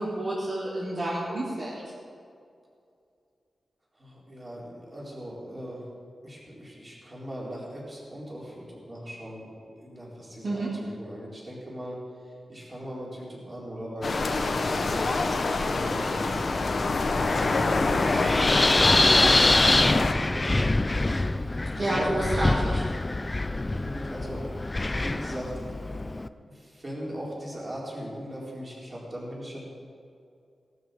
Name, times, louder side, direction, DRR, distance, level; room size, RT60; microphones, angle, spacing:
voice 1, 0.0-1.8 10.4-10.7 21.7-22.9, right 1 dB, 45° right, -7 dB, 2.6 m, -29 dB
voice 2, 4.0-5.8 6.2-12.0 12.5-16.7 17.2-21.0 21.2-21.6 21.9-22.2 23.7-24.5 24.7-26.0 26.5-29.6, equal, 25° right, -5 dB, 4.1 m, -39 dB
sound 1, 14.0-20.1, left 3 dB, 45° left, 1.1 m, -26 dB
Wind, 16.2-26.3, left 2 dB, 20° left, 0.4 m, -25 dB
17.5 x 12.5 x 5.1 m, 2.4 s
wide cardioid pair, 165°, 0 cm